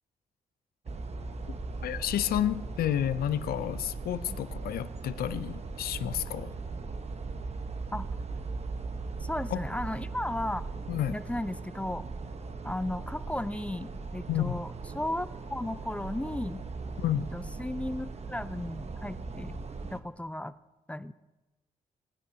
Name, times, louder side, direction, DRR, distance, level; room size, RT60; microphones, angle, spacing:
sound 1, 0.9-20.0, right 4 dB, 45° right, 1.0 m, -39 dB
voice 1, 1.8-6.5 9.5-9.6 10.9-11.2 14.3-14.6 17.0-17.3, left 11 dB, 85° left, 14 dB, 0.5 m, -30 dB
voice 2, 9.2-10.6 11.1-12.0 12.6-14.7 14.9-16.6 17.1-19.6 19.9-20.5 20.9-21.1, left 1 dB, 10° left, 13 dB, 0.5 m, -35 dB
19.0 x 9.8 x 2.8 m, 1.1 s
cardioid pair, 60°, 15 cm